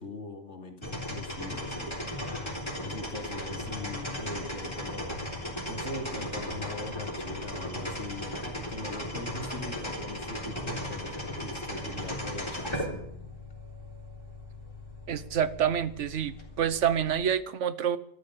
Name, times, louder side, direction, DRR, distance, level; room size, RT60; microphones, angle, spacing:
voice 1, 0.0-2.1 2.8-5.2 5.7-12.9, left 2 dB, 75° left, 4 dB, 2.8 m, -41 dB
sound 1, 0.8-17.2, left 1 dB, 25° left, 3.8 m, -37 dB
voice 2, 15.1-18.0, right 9 dB, 90° right, 15 dB, 1.2 m, -27 dB
13.5 x 12.5 x 7.8 m, 0.72 s
omnidirectional pair, 1.2 m